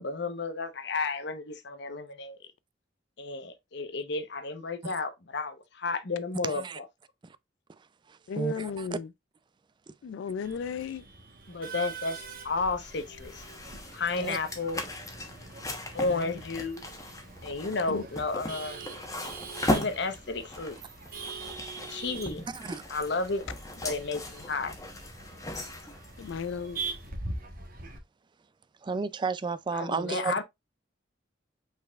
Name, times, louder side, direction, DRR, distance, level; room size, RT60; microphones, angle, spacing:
voice 1, 0.0-2.4 3.2-6.9 11.5-13.4 13.9-14.9 15.9-16.8 17.4-18.8 19.7-20.8 21.9-22.5 22.9-23.5 23.7-24.7 29.7-30.4, left 3 dB, 65° left, 0.9 m, -32 dB
voice 2, 6.4-6.8 8.4-9.0 14.2-14.4 22.5-22.8 28.8-30.4, right 4 dB, 25° right, 0.3 m, -32 dB
voice 3, 8.3-9.1 10.0-11.0 16.2-16.3 17.9-18.0 26.2-26.8, left 6 dB, 90° left, 0.3 m, -35 dB
Male speech man speaking / Laughter / Chatter, 10.4-28.0, right 4 dB, 50° right, 1.2 m, -43 dB
sound 1, 12.8-27.1, left 1 dB, 20° left, 1.0 m, -38 dB
5.3 x 4.1 x 2.3 m
head